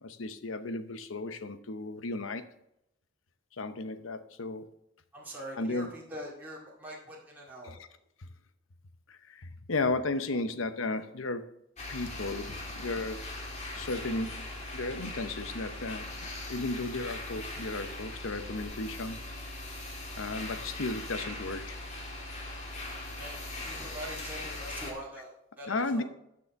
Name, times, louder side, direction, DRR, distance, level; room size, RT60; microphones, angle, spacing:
voice 1, 0.0-2.4 3.6-4.7 5.6-5.9 7.6-7.8 9.1-11.5 11.9-13.3 13.7-14.5 14.7-16.1 16.5-19.2 20.2-21.8 25.7-26.0, left 2 dB, 90° left, 10 dB, 0.8 m, -34 dB
voice 2, 5.1-7.7 10.3-10.4 23.2-26.0, equal, 10° right, -6 dB, 2.1 m, -43 dB
sound 1, 11.8-24.9, left 2 dB, 35° left, 2.2 m, -40 dB
12.0 x 6.8 x 3.5 m, 0.80 s
head